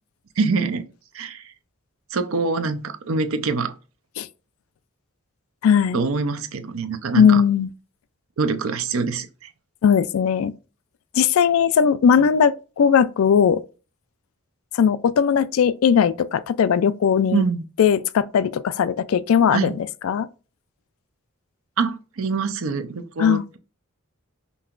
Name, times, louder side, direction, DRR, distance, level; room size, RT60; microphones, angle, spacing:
voice 1, 0.4-0.8 1.1-1.4 2.1-3.7 5.9-7.4 8.4-9.5 17.3-17.6 19.5-19.8 21.8-23.6, right 4 dB, 70° right, 0.6 m, -24 dB
voice 2, 5.6-6.0 7.2-7.7 9.8-10.5 11.1-13.6 14.7-17.4 17.8-20.3 23.2-23.4, left 7 dB, 75° left, 0.3 m, -18 dB
5.3 x 2.8 x 2.4 m
head